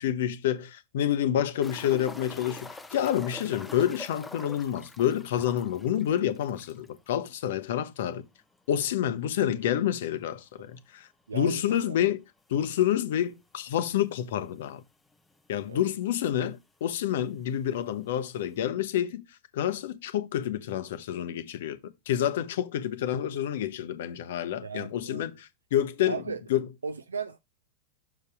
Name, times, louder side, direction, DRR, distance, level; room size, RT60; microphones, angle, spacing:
voice 1, 0.0-8.2 8.7-11.1 11.3-12.2 12.5-14.8 15.5-19.2 19.5-26.2 26.5-26.7, left 10 dB, 55° left, 0.8 m, -28 dB
sound 1, 1.6-7.0 7.3-7.4 7.7-7.8 10.6-10.7 12.4-12.5 13.3-13.4 13.6-13.7 14.6-14.7 14.8-15.5 16.4-16.5, left 2 dB, 10° left, 0.7 m, -45 dB
voice 2, 11.3-12.0 15.7-15.8 24.6-25.3 26.1-26.4 26.8-27.4, right 5 dB, 75° right, 0.4 m, -36 dB
6.5 x 4.0 x 4.6 m
figure-of-eight pair, 90°, 0 cm